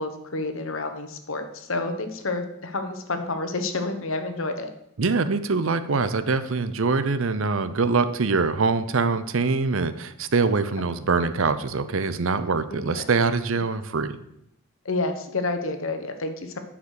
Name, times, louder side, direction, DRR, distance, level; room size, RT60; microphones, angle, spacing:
voice 1, 0.0-4.7 12.7-13.1 14.8-16.6, left 2 dB, 65° left, 7 dB, 1.1 m, -29 dB
voice 2, 5.0-14.2, right 4 dB, 65° right, 12 dB, 0.6 m, -24 dB
10.0 x 4.9 x 6.4 m, 0.79 s
head